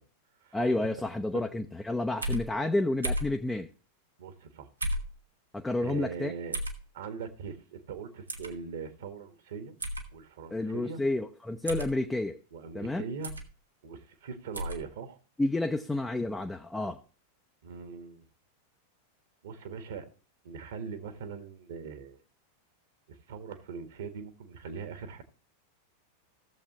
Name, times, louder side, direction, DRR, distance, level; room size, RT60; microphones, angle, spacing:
voice 1, 0.5-3.7 5.5-6.3 10.5-12.4 12.7-13.0 15.4-17.0, left 2 dB, 10° left, 0.6 m, -30 dB
sound 1, 2.2-2.5 3.0-3.3 4.8-5.1 6.5-6.8 8.3-8.5 9.8-10.1 11.7-11.9 13.2-13.5 14.5-14.8, equal, 80° right, 1.3 m, -32 dB
voice 2, 4.2-4.7 5.8-6.6 6.9-9.8 10.1-11.0 12.5-13.3 13.8-15.2 17.6-18.3 19.4-20.0 20.4-22.2 23.1-25.2, right 6 dB, 60° right, 1.4 m, -41 dB
16.0 x 7.2 x 3.0 m
figure-of-eight pair, 90°, 0 cm